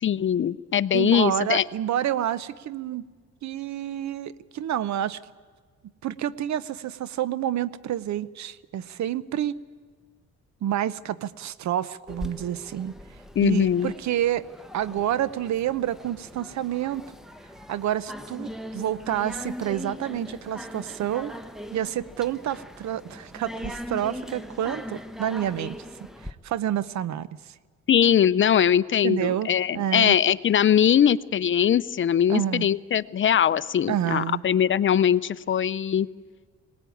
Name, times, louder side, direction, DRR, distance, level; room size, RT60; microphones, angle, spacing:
voice 1, 0.0-1.6 13.4-13.9 27.9-36.1, left 9 dB, 40° left, 17 dB, 0.6 m, -21 dB
voice 2, 0.9-3.0 3.4-5.2 6.0-9.5 10.6-13.0 13.4-14.4 14.7-17.2 17.7-21.3 21.7-25.8 26.2-27.5 29.0-29.5 29.7-30.2 32.3-32.7 33.9-34.4, right 11 dB, 65° right, 17 dB, 0.8 m, -28 dB
sound 1, 12.1-26.3, equal, ahead, 1.1 m, -40 dB
21.0 x 18.5 x 9.2 m, 1.5 s
cardioid pair, 90°, 30 cm